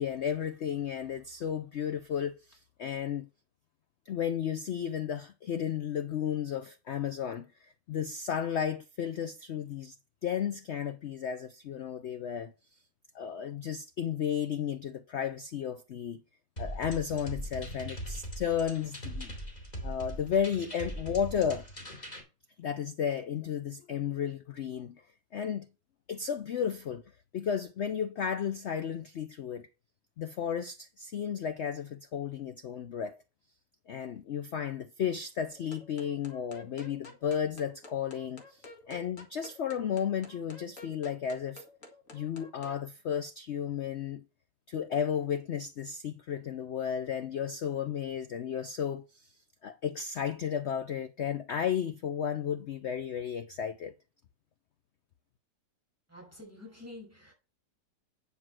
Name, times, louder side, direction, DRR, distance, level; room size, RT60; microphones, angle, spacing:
voice 1, 0.0-3.3 4.1-10.0 10.2-12.5 13.1-16.2 16.6-19.4 19.8-21.7 22.6-25.0 25.3-25.7 26.1-27.0 27.3-29.7 30.2-33.2 33.9-41.6 42.1-44.2 44.7-49.3 49.6-53.9, left 8 dB, 85° left, 0.6 m, -33 dB
sound 1, 16.6-22.2, equal, 20° left, 2.8 m, -40 dB
sound 2, 35.5-42.8, left 2 dB, 45° left, 2.2 m, -51 dB
voice 2, 56.1-57.3, left 2 dB, 10° right, 5.6 m, -48 dB
9.5 x 5.6 x 6.1 m
omnidirectional pair, 1.9 m